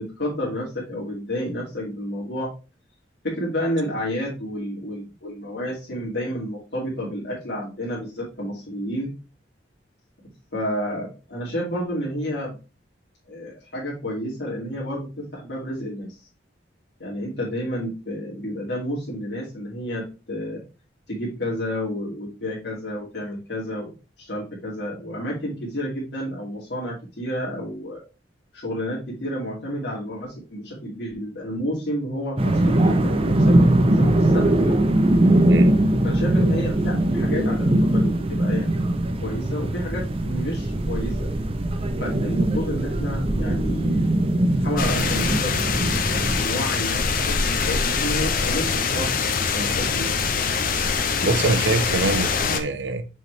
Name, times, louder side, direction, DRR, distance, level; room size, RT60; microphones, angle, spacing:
voice 1, 0.0-2.5 3.2-9.1 10.2-12.6 13.3-16.2 17.0-20.6 21.1-28.0 28.5-34.8 36.0-38.8 39.2-41.3 42.0-45.9 46.4-49.1 49.5-50.1, equal, 65° left, 2.5 m, -30 dB
sound 1, 32.4-46.4, right 1 dB, 30° right, 0.6 m, -21 dB
sound 2, 44.8-52.6, left 5 dB, 50° left, 0.7 m, -24 dB
voice 2, 51.2-53.1, right 2 dB, 80° right, 0.8 m, -24 dB
6.8 x 4.5 x 3.3 m
head